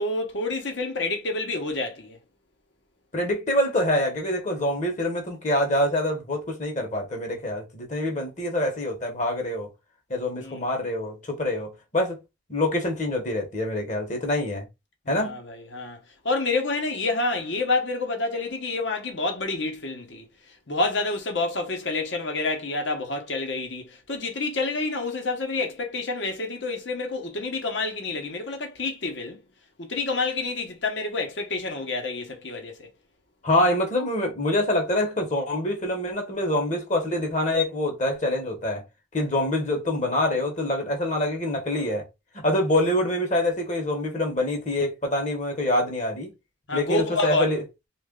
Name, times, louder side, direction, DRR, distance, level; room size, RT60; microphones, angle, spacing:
voice 1, 0.0-2.2 10.4-10.6 15.1-16.0 16.2-20.3 20.7-29.4 29.8-32.9 46.7-47.5, left 3 dB, 60° left, 1.0 m, -28 dB
voice 2, 3.1-9.7 10.1-12.2 12.5-14.6 15.1-15.4 33.4-38.8 39.1-42.0 42.4-46.3 46.7-47.6, left 1 dB, 35° left, 1.0 m, -25 dB
3.2 x 2.5 x 3.7 m
head